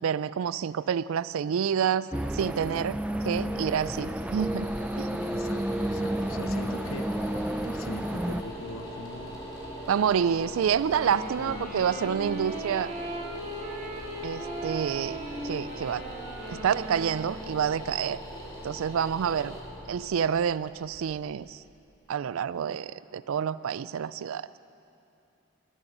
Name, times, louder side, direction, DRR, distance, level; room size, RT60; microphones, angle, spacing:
voice 1, 0.0-3.0 3.2-4.7 5.0-5.2 9.9-12.9 14.2-15.2 15.4-16.0 16.5-18.2 18.6-19.6 19.9-21.6 22.1-24.5, right 7 dB, 80° right, 17 dB, 0.3 m, -28 dB
sound 1, 2.1-8.4, right 1 dB, 5° right, 0.4 m, -31 dB
sound 2, 3.4-21.9, equal, 20° left, 2.9 m, -42 dB
voice 2, 5.2-9.4 11.4-11.9, left 3 dB, 80° left, 10 dB, 0.7 m, -42 dB
Wind instrument woodwind instrument, 10.7-17.6, right 1 dB, 45° right, 4.2 m, -38 dB
20.0 x 10.5 x 5.5 m, 2.7 s
head